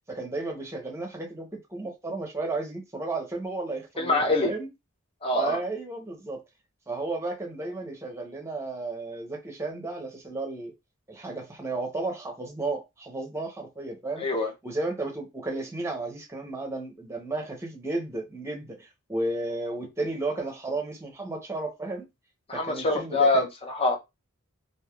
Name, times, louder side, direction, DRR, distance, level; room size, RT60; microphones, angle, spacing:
voice 1, 0.1-4.7 5.3-6.4 6.9-10.7 11.1-14.2 14.6-22.1 22.5-23.5, right 2 dB, 15° right, 0.8 m, -33 dB
voice 2, 4.0-4.5 5.2-5.6 14.2-14.5 22.5-24.0, left 2 dB, 25° left, 0.6 m, -24 dB
3.3 x 2.5 x 2.3 m
head